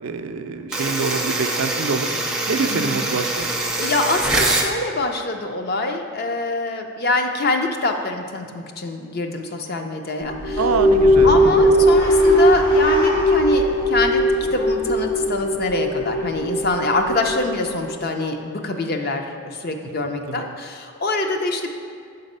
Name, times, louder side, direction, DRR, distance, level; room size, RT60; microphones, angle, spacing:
voice 1, 0.0-2.1 2.5-3.5 10.6-11.3 20.3-20.4, right 5 dB, 85° right, 7 dB, 0.4 m, -25 dB
sound 1, 0.7-4.7, right 2 dB, 5° right, 0.4 m, -24 dB
voice 2, 2.6-3.0 3.8-10.7 11.2-14.2 14.5-21.7, left 2 dB, 45° left, 4 dB, 0.5 m, -24 dB
sound 2, 10.2-17.8, equal, 80° left, 1.0 m, -18 dB
sound 3, 10.9-15.3, equal, 65° left, 1.2 m, -30 dB
7.2 x 4.0 x 5.4 m, 2.3 s
head